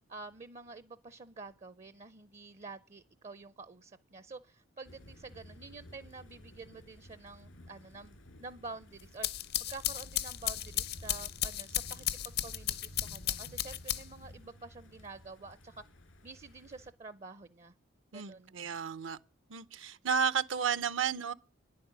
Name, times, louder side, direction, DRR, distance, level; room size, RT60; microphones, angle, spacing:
voice 1, 0.1-15.8 16.2-17.7 18.1-18.5, right 3 dB, 35° right, 0.5 m, -49 dB
sound 1, 4.8-16.9, left 1 dB, 85° left, 2.6 m, -54 dB
sound 2, 9.0-14.3, left 12 dB, 55° left, 0.7 m, -35 dB
voice 2, 18.1-19.2 19.5-21.3, right 7 dB, 75° right, 0.7 m, -32 dB
10.5 x 8.5 x 8.1 m
head